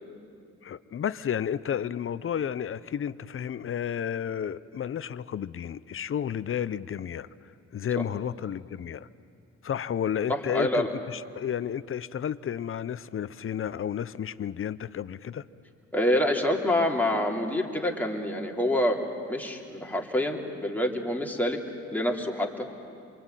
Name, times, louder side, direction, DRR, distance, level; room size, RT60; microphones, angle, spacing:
voice 1, 0.6-7.3 7.7-9.1 9.6-15.5, left 9 dB, 45° left, 16 dB, 0.7 m, -32 dB
voice 2, 10.3-10.9 15.9-19.0 19.3-21.6 21.9-22.7, left 1 dB, 5° left, 0 dB, 3.0 m, -27 dB
27.5 x 22.5 x 9.1 m, 2.4 s
cardioid pair, 90°, 30 cm